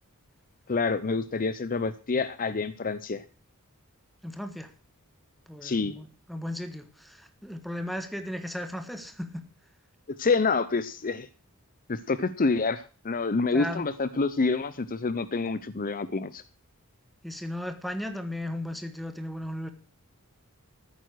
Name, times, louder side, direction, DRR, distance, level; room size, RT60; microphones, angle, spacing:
voice 1, 0.7-3.2 5.6-5.9 10.2-11.3 11.9-16.4, left 4 dB, 40° left, 0.7 m, -27 dB
voice 2, 4.2-4.7 5.5-9.4 13.5-13.9 17.2-19.7, left 1 dB, ahead, 1.5 m, -36 dB
13.5 x 9.4 x 6.3 m
head